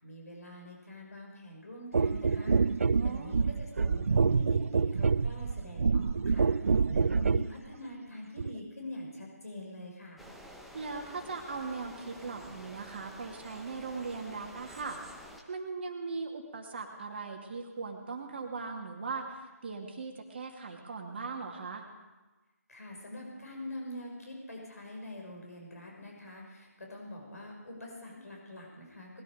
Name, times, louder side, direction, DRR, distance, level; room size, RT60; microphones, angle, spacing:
voice 1, 0.0-10.2 22.7-29.2, left 1 dB, 70° left, 0 dB, 6.2 m, -45 dB
sound 1, 1.9-7.5 8.4-8.5, right 5 dB, 55° right, 0.4 m, -27 dB
voice 2, 2.9-3.4 10.7-15.0 15.5-21.8, right 4 dB, 40° right, 2 dB, 2.4 m, -39 dB
sound 2, 10.2-15.4, equal, ahead, 0.9 m, -50 dB
20.5 x 13.0 x 5.1 m, 1.2 s
figure-of-eight pair, 155°, 9 cm